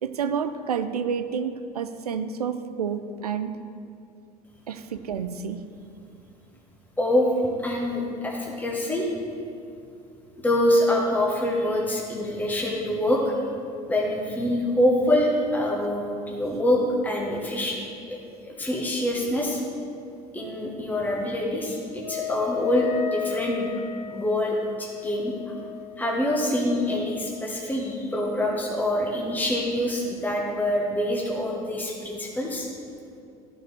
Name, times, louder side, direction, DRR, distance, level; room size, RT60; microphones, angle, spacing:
voice 1, 0.0-3.7 4.7-5.6, right 7 dB, 80° right, 10 dB, 0.4 m, -29 dB
voice 2, 7.6-9.1 10.4-13.3 13.9-17.8 18.1-18.2 18.4-19.6 20.3-23.7 24.1-25.3 26.0-32.7, left 1 dB, 10° left, -3 dB, 1.2 m, -25 dB
Wind instrument woodwind instrument, 22.0-27.6, left 10 dB, 90° left, 0.5 m, -35 dB
13.5 x 4.6 x 3.4 m, 2.5 s
figure-of-eight pair, 65°, 20 cm